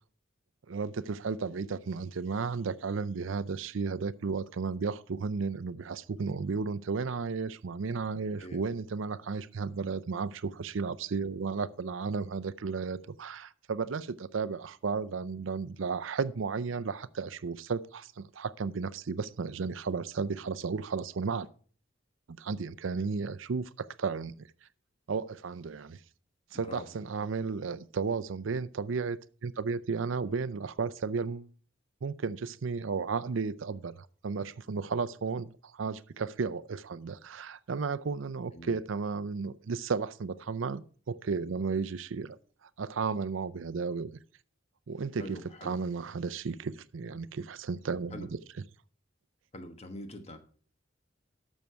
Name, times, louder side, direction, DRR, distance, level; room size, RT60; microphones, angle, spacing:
voice 1, 0.7-21.5 22.4-24.5 25.1-26.0 26.5-31.5 32.0-44.2 44.9-48.4, right 5 dB, 75° right, 0.5 m, -34 dB
voice 2, 26.5-26.9 38.5-38.8 45.2-45.8 48.1-48.3 49.5-50.4, left 1 dB, 35° left, 1.2 m, -44 dB
12.5 x 6.4 x 4.5 m
head